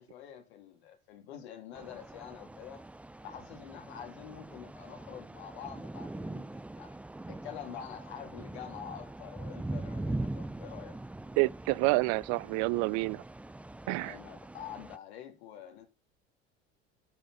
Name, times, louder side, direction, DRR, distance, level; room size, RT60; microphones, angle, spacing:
voice 1, 0.0-2.8 3.2-7.0 7.3-11.0 13.9-15.9, left 9 dB, 75° left, 2.7 m, -46 dB
sound 1, 1.7-15.0, right 2 dB, 5° right, 0.4 m, -42 dB
voice 2, 11.4-13.2 13.9-14.2, right 24 dB, 60° right, 0.5 m, -28 dB
9.8 x 4.8 x 5.6 m
hypercardioid pair, 75°, 33 cm